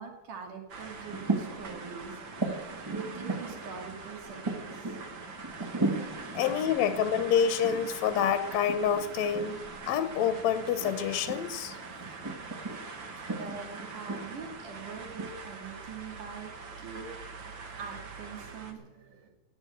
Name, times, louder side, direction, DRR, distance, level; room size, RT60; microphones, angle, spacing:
voice 1, 0.0-2.2 2.9-5.0 6.4-7.0 13.3-16.5 16.8-17.1 17.8-19.3, right 6 dB, 85° right, 2 dB, 4.1 m, -43 dB
sound 1, 0.7-18.7, right 4 dB, 45° right, 1.9 m, -44 dB
sound 2, 1.0-15.3, right 2 dB, 25° right, 0.5 m, -38 dB
voice 2, 6.4-9.6 9.9-11.8, left 8 dB, 70° left, 10 dB, 1.9 m, -27 dB
18.5 x 7.7 x 8.7 m, 1.1 s
omnidirectional pair, 3.5 m